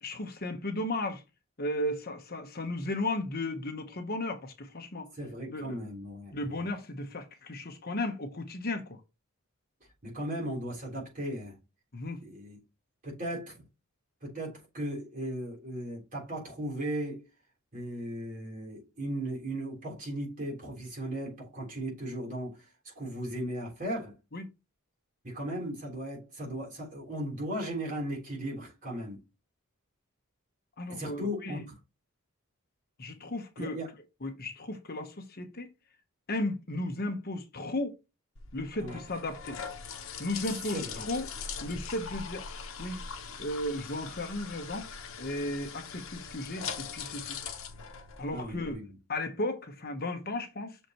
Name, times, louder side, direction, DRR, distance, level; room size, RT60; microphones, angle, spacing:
voice 1, 0.0-1.2 1.6-5.1 5.5-5.9 6.3-9.0 11.9-12.2 24.3-24.5 30.8-31.6 33.0-33.8 34.2-35.7 36.3-38.0 38.5-39.6 40.2-41.3 41.6-42.5 42.8-43.0 43.4-44.9 45.2-47.4 48.2-50.8, left 1 dB, 45° left, 1.1 m, -35 dB
voice 2, 5.2-6.3 10.0-11.6 12.2-12.6 13.0-13.6 14.2-17.2 17.7-22.6 23.0-24.1 25.2-29.2 30.9-31.6 33.6-33.9 38.8-39.0 40.7-41.1 48.3-48.8, right 1 dB, 40° right, 3.6 m, -36 dB
sound 1, 38.4-48.7, left 6 dB, 70° left, 1.2 m, -41 dB
6.4 x 4.9 x 3.0 m
head